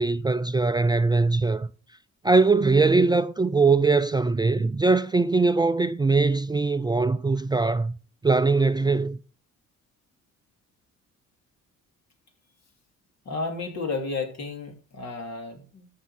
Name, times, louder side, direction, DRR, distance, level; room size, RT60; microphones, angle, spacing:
voice 1, 0.0-1.7 2.2-7.9 8.2-9.2, right 3 dB, 15° right, 0.3 m, -21 dB
voice 2, 13.2-15.9, left 3 dB, 60° left, 2.8 m, -32 dB
13.5 x 5.7 x 4.2 m
cardioid pair, 90°, 30 cm